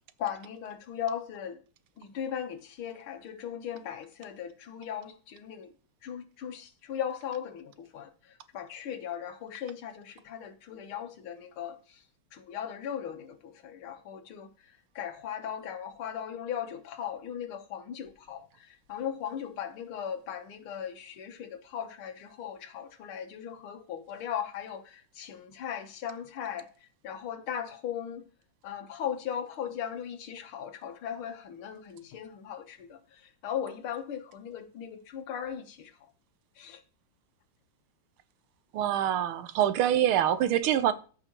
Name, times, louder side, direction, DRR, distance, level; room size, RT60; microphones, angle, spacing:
voice 1, 0.2-1.6 2.0-5.7 6.0-12.0 12.3-14.5 15.0-26.7 27.0-28.3 28.6-35.9 36.6-36.8, left 9 dB, 85° left, 1.9 m, -38 dB
voice 2, 38.7-40.9, right 11 dB, 85° right, 1.6 m, -25 dB
14.0 x 5.5 x 2.9 m
omnidirectional pair, 2.3 m